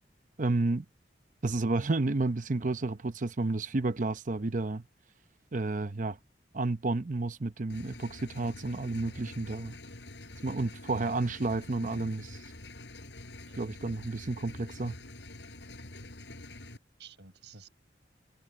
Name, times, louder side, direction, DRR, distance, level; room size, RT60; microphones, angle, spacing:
voice 1, 0.4-0.8 1.4-4.8 5.5-6.2 6.5-9.7 10.4-12.4 13.5-14.9, right 2 dB, 45° right, 0.8 m, -31 dB
Engine, 7.7-16.8, left 2 dB, 85° left, 4.3 m, -46 dB
voice 2, 17.0-17.7, right 6 dB, 75° right, 6.2 m, -53 dB
head